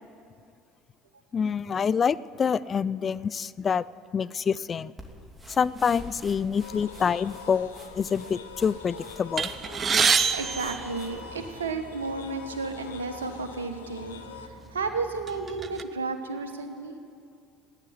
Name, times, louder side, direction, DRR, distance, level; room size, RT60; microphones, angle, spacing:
voice 1, 1.3-3.8 4.1-4.9 5.6-9.5, left 6 dB, 35° left, 18 dB, 0.4 m, -26 dB
Feet Drag on Carpet, 5.0-11.5, equal, 15° right, 2.9 m, -48 dB
sound 1, 6.6-14.5, left 6 dB, 85° left, 0.9 m, -44 dB
sound 2, 9.4-11.7 12.5-12.7 13.0-13.2 14.0-14.2 14.7-15.8, right 6 dB, 35° right, 0.8 m, -26 dB
voice 2, 10.3-16.9, right 4 dB, 85° right, 8 dB, 1.2 m, -33 dB
15.5 x 9.9 x 9.3 m, 2.3 s
hypercardioid pair, 65°, 0 cm